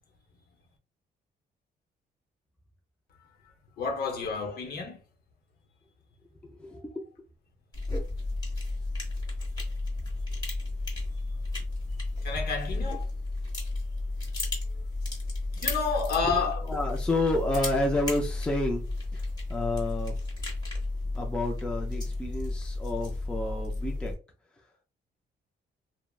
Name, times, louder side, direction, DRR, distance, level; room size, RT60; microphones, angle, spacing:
voice 1, 3.8-5.0 12.2-13.0 15.5-16.6, left 4 dB, 60° left, 0.8 m, -30 dB
voice 2, 6.4-7.0 16.6-18.8 19.1-19.2 19.5-20.1 21.2-24.1, left 2 dB, 5° left, 0.4 m, -30 dB
sound 1, 7.7-24.1, left 2 dB, 20° left, 1.0 m, -33 dB
3.3 x 2.0 x 2.3 m
cardioid pair, 170°, 18 cm